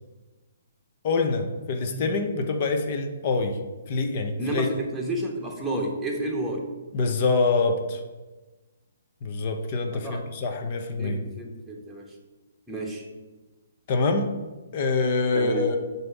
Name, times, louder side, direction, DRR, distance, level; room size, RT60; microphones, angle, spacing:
voice 1, 1.0-3.6 3.9-4.7 6.9-8.0 9.2-11.2 13.9-14.3 14.7-15.8, left 3 dB, 45° left, 5 dB, 0.8 m, -25 dB
voice 2, 4.4-6.7 9.9-10.2 11.0-12.1 12.7-13.0 15.3-15.7, right 1 dB, 5° right, -1 dB, 1.1 m, -31 dB
7.4 x 2.8 x 5.9 m, 1.2 s
hypercardioid pair, 140°, 0 cm